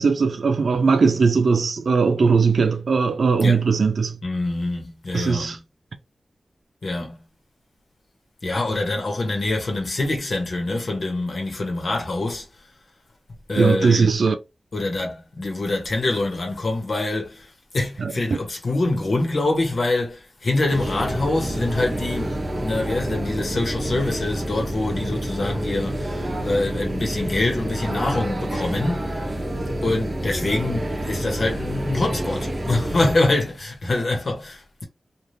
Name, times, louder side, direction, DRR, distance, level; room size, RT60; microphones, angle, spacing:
voice 1, 0.0-4.2 5.1-5.6 13.6-14.3 18.0-18.4, right 5 dB, 80° right, 0.5 m, -19 dB
voice 2, 4.2-5.5 6.8-7.2 8.4-12.5 13.5-14.1 14.7-29.2 29.8-34.8, left 2 dB, 70° left, 1.1 m, -25 dB
sound 1, 20.7-33.2, right 1 dB, 40° right, 0.8 m, -28 dB
3.2 x 2.5 x 2.6 m
wide cardioid pair, 95°, 0 cm